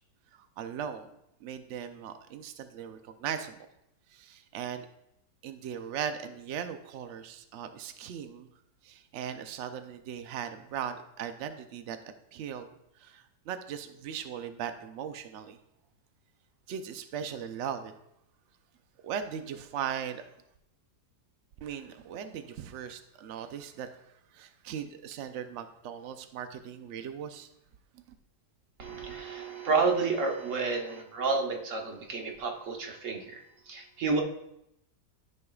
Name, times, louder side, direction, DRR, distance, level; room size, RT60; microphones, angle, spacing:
voice 1, 0.3-1.1 1.4-3.6 4.1-4.9 5.4-8.5 8.8-12.0 12.3-12.7 13.0-15.6 16.7-17.9 19.0-20.2 21.6-23.9 24.3-27.5 27.9-28.0, right 8 dB, 90° right, 8 dB, 0.6 m, -38 dB
voice 2, 28.8-34.2, right 4 dB, 50° right, 2 dB, 1.2 m, -30 dB
13.0 x 5.4 x 2.3 m, 0.79 s
omnidirectional pair, 1.9 m